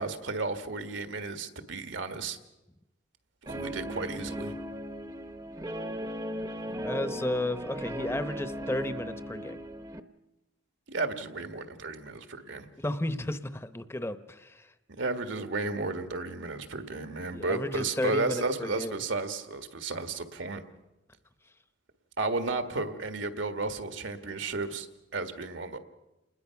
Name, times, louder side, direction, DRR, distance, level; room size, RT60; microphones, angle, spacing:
voice 1, 0.0-2.4 3.4-4.6 10.9-12.7 15.0-20.6 22.2-25.8, right 3 dB, 80° right, 8 dB, 1.7 m, -33 dB
Guitar, 3.5-10.0, equal, 20° right, 0.8 m, -37 dB
voice 2, 6.8-9.6 12.8-14.7 17.3-18.9, left 1 dB, 15° left, 12 dB, 0.9 m, -33 dB
28.5 x 20.5 x 5.9 m, 1.0 s
head